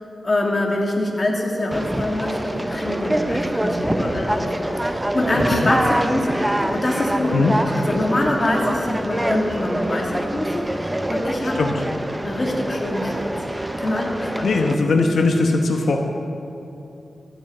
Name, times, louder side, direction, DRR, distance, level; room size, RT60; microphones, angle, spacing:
voice 1, 0.2-6.4 6.7-10.7 11.1-11.6 12.2-13.3 13.8-14.5, left 1 dB, 35° left, -1 dB, 2.2 m, -24 dB
Conversation, 1.7-14.8, right 1 dB, 10° right, 0.6 m, -25 dB
voice 2, 5.3-5.7 7.3-7.5 11.5-11.8 14.4-16.0, left 3 dB, 90° left, 2 dB, 1.0 m, -20 dB
13.5 x 9.0 x 7.7 m, 2.8 s
wide cardioid pair, 120°, 0 cm